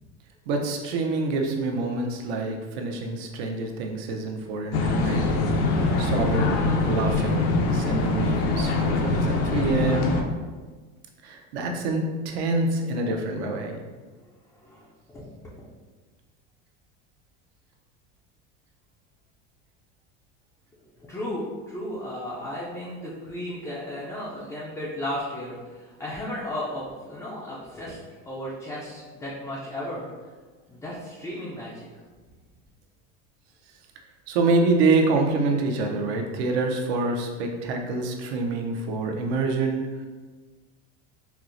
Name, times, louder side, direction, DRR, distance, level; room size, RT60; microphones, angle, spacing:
voice 1, 0.5-5.2 6.0-10.1 11.2-13.8 34.3-39.8, right 3 dB, 75° right, 2 dB, 0.6 m, -26 dB
sound 1, 4.7-10.2, left 2 dB, 70° left, 0.5 m, -23 dB
voice 2, 14.6-15.2 21.1-28.0 28.3-30.1 30.7-31.9, left 1 dB, 10° left, -7 dB, 0.3 m, -34 dB
4.4 x 2.0 x 2.5 m, 1.4 s
supercardioid pair, 135°, 32 cm